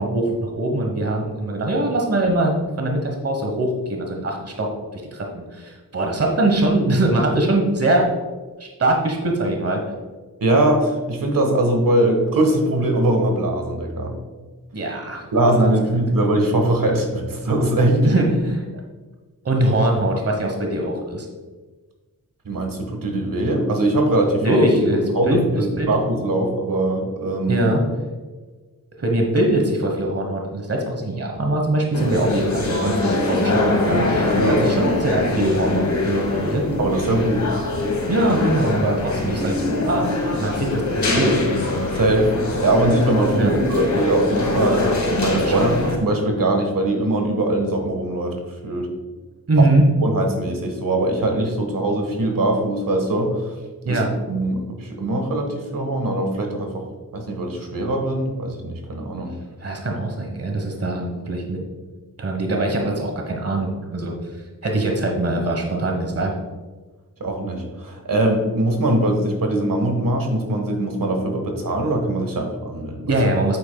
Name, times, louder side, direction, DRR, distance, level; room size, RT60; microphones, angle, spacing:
voice 1, 0.0-8.1 8.6-9.8 14.7-15.3 18.0-18.6 19.4-21.3 24.4-25.9 27.5-27.8 29.0-36.6 38.1-40.1 40.4-41.4 43.3-43.6 45.4-45.8 49.5-49.8 53.8-54.1 59.6-61.6 62.2-66.3 73.1-73.6, right 1 dB, 40° right, 2 dB, 1.2 m, -22 dB
voice 2, 10.4-14.1 15.3-18.1 22.4-24.6 25.1-27.6 34.4-34.6 36.8-37.5 41.9-42.3 42.6-45.7 46.0-48.4 48.6-48.9 49.6-49.7 50.0-53.5 53.9-56.8 57.1-59.3 67.2-73.1, right 1 dB, 65° right, 3 dB, 1.4 m, -21 dB
sound 1, 31.9-46.0, left 2 dB, 55° left, 1.9 m, -23 dB
8.6 x 8.4 x 2.3 m, 1.3 s
wide cardioid pair, 105°, 36 cm